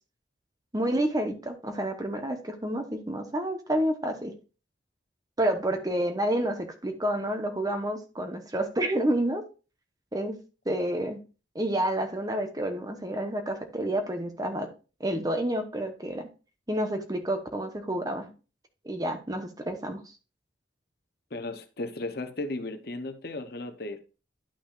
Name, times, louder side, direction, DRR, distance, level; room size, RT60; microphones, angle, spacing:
voice 1, 0.7-4.3 5.4-9.4 10.1-10.4 10.6-11.2 11.5-14.7 15.0-16.3 16.7-18.3 18.8-20.0, right 1 dB, 20° right, 1.0 m, -29 dB
voice 2, 21.3-24.0, left 2 dB, 55° left, 0.8 m, -35 dB
11.5 x 5.9 x 2.5 m
head